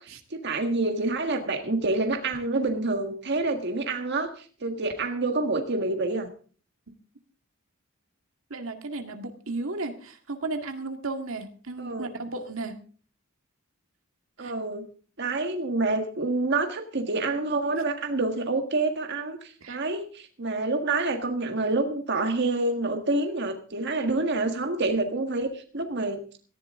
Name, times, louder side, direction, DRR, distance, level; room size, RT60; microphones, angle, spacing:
voice 1, 0.0-6.3 11.8-12.1 14.4-14.8 15.2-26.4, right 2 dB, 55° right, 5 dB, 1.7 m, -27 dB
voice 2, 8.5-12.7 14.4-14.5 19.6-19.8, right 3 dB, 80° right, 5 dB, 2.0 m, -34 dB
18.0 x 15.0 x 3.7 m, 0.41 s
head